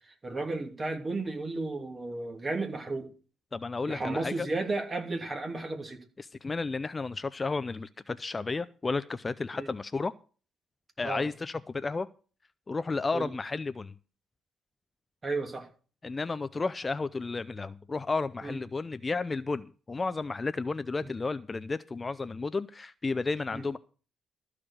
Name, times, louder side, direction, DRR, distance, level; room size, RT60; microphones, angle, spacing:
voice 1, 0.2-3.1 3.9-6.0 9.5-9.7 11.0-11.3 13.1-13.3 15.2-15.7 18.4-18.6 21.0-21.1 23.5-23.7, right 3 dB, 30° right, 2.9 m, -33 dB
voice 2, 3.5-4.5 6.2-10.1 11.0-12.1 12.7-13.9 16.0-23.8, left 3 dB, 25° left, 0.5 m, -32 dB
14.0 x 4.9 x 8.7 m
cardioid pair, 90°, 0 cm